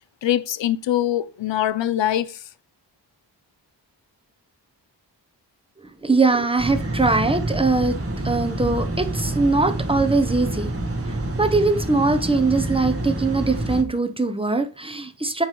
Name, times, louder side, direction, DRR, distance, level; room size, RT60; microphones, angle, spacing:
voice 1, 0.2-2.4, left 12 dB, 80° left, 0.6 m, -23 dB
voice 2, 6.0-8.0 8.2-10.7 11.0-15.4, right 3 dB, 15° right, 0.9 m, -21 dB
sound 1, 6.6-13.8, right 1 dB, 30° right, 1.5 m, -27 dB
8.7 x 3.3 x 5.9 m
wide cardioid pair, 90°, 43 cm